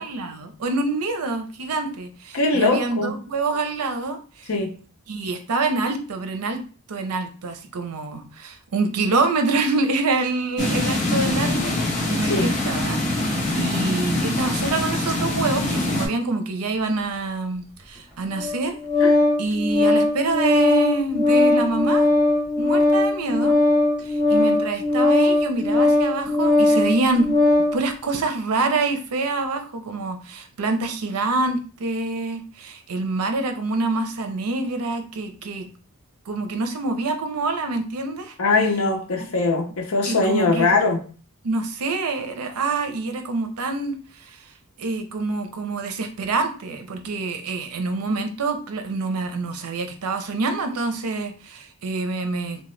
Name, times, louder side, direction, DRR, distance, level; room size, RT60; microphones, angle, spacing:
voice 1, 0.0-4.5 5.1-6.6 6.9-18.8 19.4-22.1 22.6-23.5 24.0-27.3 27.7-35.7 36.3-38.4 40.1-40.7 41.4-44.4 44.8-52.7, right 3 dB, 85° right, 0.6 m, -26 dB
voice 2, 2.3-3.2 4.5-4.8 12.2-12.5 19.0-19.1 38.4-41.0, left 3 dB, 70° left, 0.6 m, -21 dB
sound 1, 10.6-16.1, left 1 dB, 35° left, 0.6 m, -24 dB
Organ, 18.3-27.8, left 2 dB, 5° right, 1.1 m, -19 dB
2.9 x 2.1 x 3.2 m
head